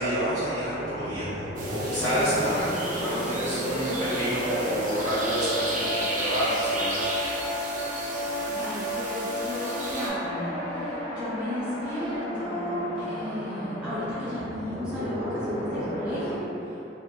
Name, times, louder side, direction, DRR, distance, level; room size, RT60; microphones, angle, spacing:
voice 1, 0.0-7.4, equal, 15° left, -16 dB, 0.9 m, -29 dB
sound 1, 0.6-16.3, equal, 85° left, 1.2 m, -32 dB
sound 2, 1.6-10.1, right 2 dB, 45° right, 0.5 m, -34 dB
voice 2, 2.0-2.5 8.5-16.4, left 1 dB, 5° right, -14 dB, 1.1 m, -34 dB
3.4 x 2.4 x 2.5 m, 2.9 s
head